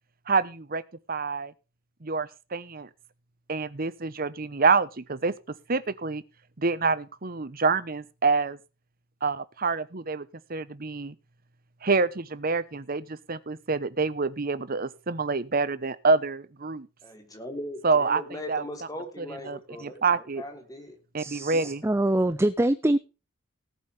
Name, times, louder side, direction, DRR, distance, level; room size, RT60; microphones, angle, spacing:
voice 1, 0.3-0.8 1.1-1.5 2.0-2.9 3.5-6.2 6.6-8.6 9.2-11.1 11.8-16.9 17.8-18.2 18.5-18.6 19.2-20.4 21.1-21.8, right 4 dB, 45° right, 16 dB, 0.9 m, -27 dB
voice 2, 17.0-20.0 20.4-20.9, left 1 dB, 20° left, 4 dB, 3.4 m, -39 dB
voice 3, 21.2-23.0, right 1 dB, 15° right, 13 dB, 0.5 m, -24 dB
18.5 x 8.2 x 3.4 m, 0.31 s
head